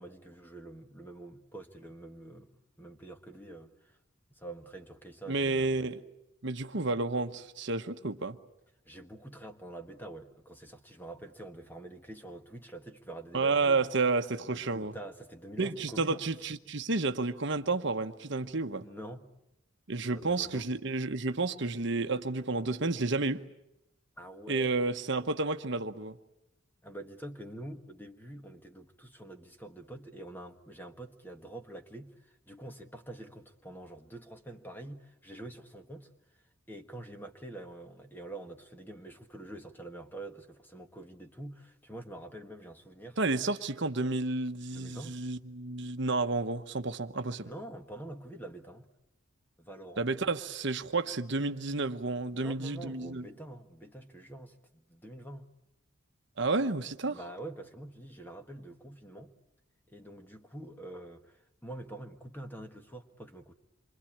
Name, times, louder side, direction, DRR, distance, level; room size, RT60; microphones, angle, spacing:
voice 1, 0.0-4.0 4.3-5.9 8.8-13.9 14.5-16.2 18.8-19.3 20.1-20.7 24.2-24.9 26.8-36.1 36.7-43.2 44.7-45.2 47.4-48.9 49.6-50.4 52.3-55.5 57.1-59.3 59.9-63.5, right 1 dB, 10° left, 1.6 m, -46 dB
voice 2, 5.3-6.0 6.4-8.4 13.3-14.9 15.6-18.8 19.9-23.4 24.5-26.2 43.2-47.5 50.0-53.2 56.4-57.2, right 3 dB, 55° right, 1.1 m, -31 dB
27.5 x 24.5 x 8.7 m
head